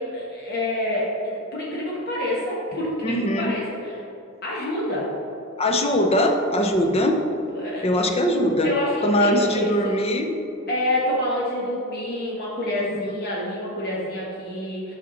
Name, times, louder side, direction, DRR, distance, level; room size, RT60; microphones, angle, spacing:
voice 1, 0.0-4.0 4.4-5.1 7.5-8.0 8.6-10.1 10.7-14.9, left 1 dB, 50° left, -5 dB, 1.4 m, -27 dB
voice 2, 3.0-3.5 5.6-7.2 7.8-8.7 9.0-10.4 12.8-13.2, equal, 30° left, 4 dB, 0.7 m, -21 dB
8.2 x 5.8 x 4.0 m, 2.8 s
head